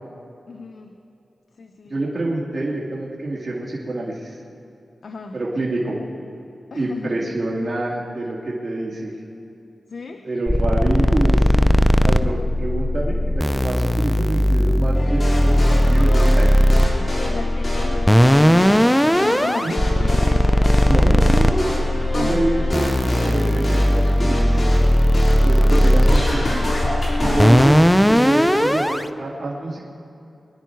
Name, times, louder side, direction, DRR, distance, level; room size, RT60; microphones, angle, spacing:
voice 1, 0.5-0.9 1.6-1.9 5.0-5.4 6.7-7.2 9.9-10.3 15.7-16.6 16.8-20.9 22.1-22.5 25.6-25.9 27.2-27.4, left 4 dB, 70° left, 4 dB, 0.8 m, -34 dB
voice 2, 1.9-4.4 5.3-6.0 6.7-9.1 10.2-11.6 12.0-16.5 19.6-19.7 20.8-21.8 22.1-22.9 23.2-24.6 25.4-26.6 27.2-29.9, right 2 dB, 50° right, -4 dB, 2.4 m, -26 dB
sound 1, 10.5-29.0, equal, 5° left, 0.5 m, -17 dB
sound 2, 14.9-27.7, left 1 dB, 40° left, 4.1 m, -27 dB
23.0 x 10.0 x 4.6 m, 2.7 s
wide cardioid pair, 75°, 0 cm